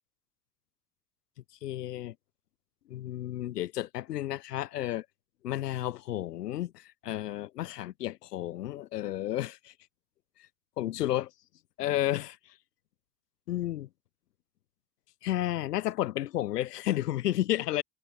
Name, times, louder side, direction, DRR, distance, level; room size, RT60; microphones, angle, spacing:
voice 1, 1.6-2.1 2.9-5.1 5.4-9.7 10.8-11.3 11.8-12.4 13.5-13.9 15.2-17.8, left 14 dB, 90° left, 0.7 m, -32 dB
hypercardioid pair, 60°, 46 cm